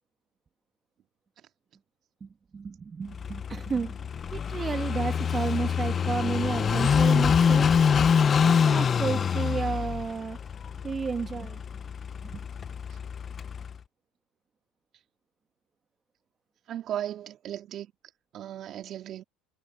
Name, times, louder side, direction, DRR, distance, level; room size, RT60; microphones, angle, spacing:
voice 1, 2.2-4.0 4.3-7.7 8.4-10.4 10.8-11.6 12.2-12.4, right 5 dB, 30° right, 1.7 m, -32 dB
Car passing by / Idling, 3.1-13.8, left 7 dB, 35° left, 0.9 m, -25 dB
voice 2, 16.7-17.9 18.3-19.2, right 11 dB, 50° right, 2.5 m, -36 dB
supercardioid pair, 90°, 0 cm